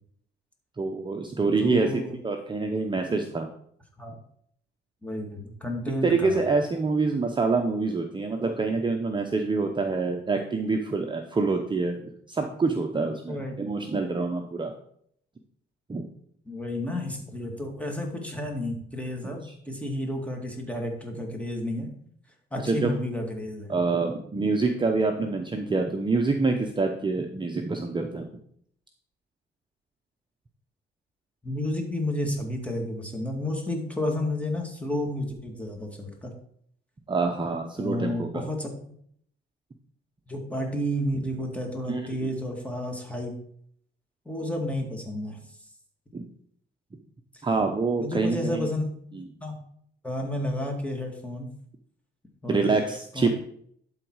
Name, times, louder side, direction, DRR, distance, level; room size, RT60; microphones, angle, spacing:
voice 1, 0.8-3.5 6.0-12.0 12.3-14.7 15.9-16.0 22.5-22.9 23.7-28.2 37.1-38.4 41.9-42.1 46.1-46.3 47.4-48.7 49.1-49.2 52.5-53.3, right 3 dB, 25° right, 3 dB, 0.8 m, -26 dB
voice 2, 1.6-2.2 4.0-4.2 5.0-6.4 13.3-13.6 16.5-21.9 22.5-23.8 31.4-36.3 37.8-38.7 40.3-43.3 44.3-45.4 47.3-47.4 48.0-48.9 49.4-49.5 50.0-51.5 52.4-52.8 53.1-53.3, left 1 dB, 5° left, 1 dB, 2.2 m, -31 dB
11.5 x 4.0 x 4.7 m, 0.66 s
cardioid pair, 90°, 20 cm